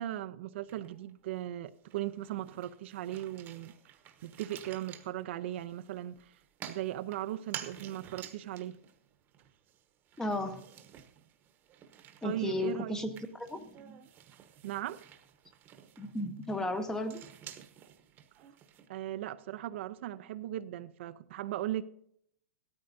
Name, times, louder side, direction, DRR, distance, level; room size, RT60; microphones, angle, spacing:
voice 1, 0.0-3.7 4.2-6.4 6.6-8.8 12.2-13.0 14.6-15.0 18.9-21.8, right 13 dB, 55° right, 0.6 m, -38 dB
sound 1, 0.6-1.4 1.7-18.9, right 10 dB, 25° right, 1.1 m, -51 dB
voice 2, 10.2-10.6 12.2-14.0 16.0-17.2, left 2 dB, 5° left, 0.9 m, -35 dB
16.5 x 13.5 x 2.6 m
hypercardioid pair, 150°, 7 cm